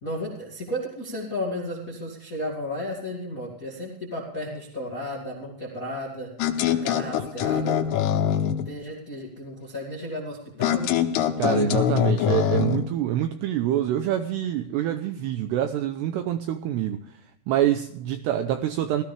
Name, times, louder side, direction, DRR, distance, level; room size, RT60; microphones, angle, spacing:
voice 1, 0.0-6.3 6.6-7.8 8.5-10.9, left 1 dB, 35° left, 1.4 m, -33 dB
sound 1, 6.4-8.7 10.6-12.9, left 9 dB, 90° left, 3.6 m, -23 dB
voice 2, 11.4-17.0 17.5-19.0, right 11 dB, 85° right, 2.4 m, -26 dB
16.5 x 14.0 x 3.4 m
omnidirectional pair, 5.5 m